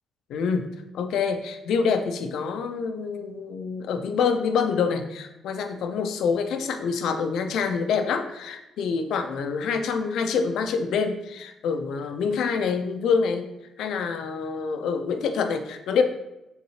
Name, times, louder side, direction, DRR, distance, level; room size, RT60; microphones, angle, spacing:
voice 1, 0.3-0.7 0.9-13.5 13.8-16.0, left 5 dB, 80° left, 7 dB, 0.3 m, -26 dB
3.7 x 2.8 x 2.8 m, 0.92 s
cardioid pair, 90°, 0 cm